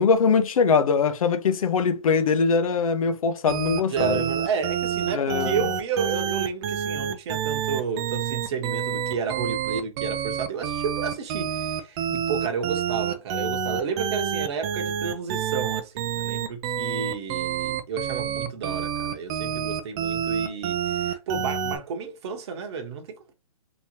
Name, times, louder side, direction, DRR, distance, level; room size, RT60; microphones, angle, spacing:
voice 1, 0.0-4.2 5.1-5.6, left 5 dB, 70° left, 0.8 m, -22 dB
sound 1, 3.5-21.8, right 8 dB, 30° right, 0.6 m, -28 dB
voice 2, 3.9-23.3, right 6 dB, 50° right, 1.1 m, -31 dB
3.4 x 3.0 x 2.7 m
hypercardioid pair, 140°, 18 cm